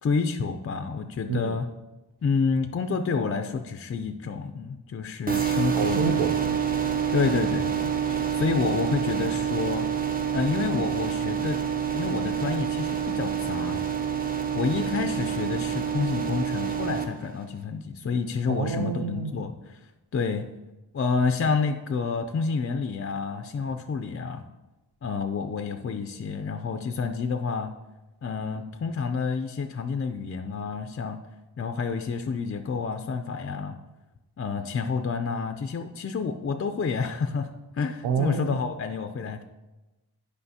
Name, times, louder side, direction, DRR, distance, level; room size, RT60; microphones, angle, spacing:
voice 1, 0.0-1.7 2.2-6.3 7.1-9.8 10.3-11.6 11.9-13.8 14.5-19.8 20.1-20.5 20.9-24.4 25.0-27.7 28.2-31.2 31.6-33.8 34.4-37.5 37.7-39.4, left 5 dB, 35° left, 7 dB, 0.4 m, -29 dB
sound 1, 5.3-17.0, right 8 dB, 20° right, 0.6 m, -27 dB
voice 2, 5.7-6.7 18.5-19.3 38.0-38.6, right 6 dB, 75° right, 7 dB, 0.5 m, -28 dB
10.0 x 5.0 x 2.8 m, 1.1 s
wide cardioid pair, 110°, 40 cm